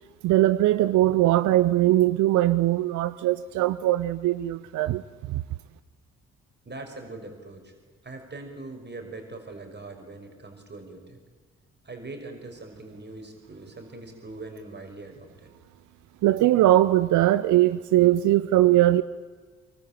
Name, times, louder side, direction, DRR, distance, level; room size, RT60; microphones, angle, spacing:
voice 1, 0.2-5.0 5.3-5.4 16.2-19.0, right 15 dB, 55° right, 0.8 m, -21 dB
voice 2, 6.6-7.7 8.0-11.2 11.8-15.5, right 2 dB, 30° right, 6.0 m, -41 dB
24.0 x 23.5 x 8.9 m
figure-of-eight pair, 40°, 35 cm